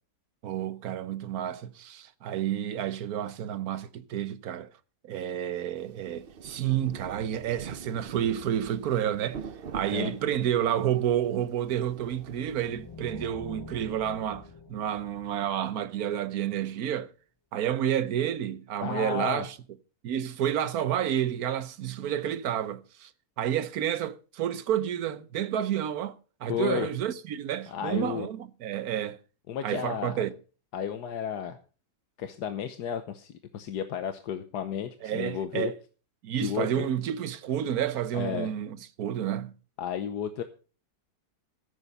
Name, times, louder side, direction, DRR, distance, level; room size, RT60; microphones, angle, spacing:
voice 1, 0.4-4.7 5.1-9.4 9.7-17.1 17.5-19.6 20.0-23.1 23.4-29.2 29.6-30.3 35.0-35.7 36.2-39.5, right 10 dB, 70° right, 1.3 m, -30 dB
Rain, 5.8-13.0, right 6 dB, 45° right, 0.8 m, -43 dB
sound 1, 11.9-16.3, left 3 dB, 25° left, 0.6 m, -46 dB
voice 2, 18.8-19.5 26.5-26.9 27.7-28.3 29.5-30.2 30.7-31.6 32.2-35.7 36.4-36.9 38.1-38.5 39.8-40.4, left 9 dB, 85° left, 1.5 m, -33 dB
14.5 x 8.1 x 5.5 m
omnidirectional pair, 1.7 m